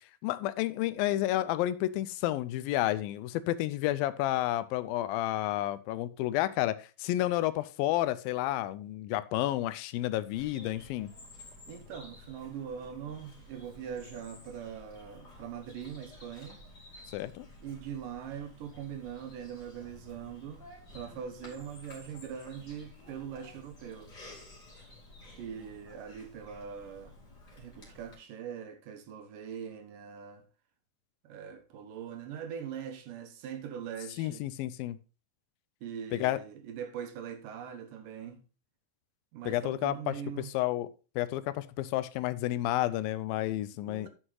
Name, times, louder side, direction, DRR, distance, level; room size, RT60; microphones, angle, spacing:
voice 1, 0.2-11.1 17.1-17.5 34.2-35.0 36.1-36.4 39.4-40.1 40.5-40.9 41.2-44.1, left 15 dB, 85° left, 2.4 m, -31 dB
Bird vocalization bird call bird song, 10.3-28.1, left 2 dB, 30° left, 2.9 m, -52 dB
voice 2, 11.7-16.6 17.6-20.7 20.9-24.2 25.4-27.2 27.5-30.4 31.2-34.5 35.8-38.4 39.3-40.5 43.7-44.1, right 8 dB, 75° right, 2.6 m, -42 dB
9.7 x 6.3 x 3.8 m
omnidirectional pair, 4.1 m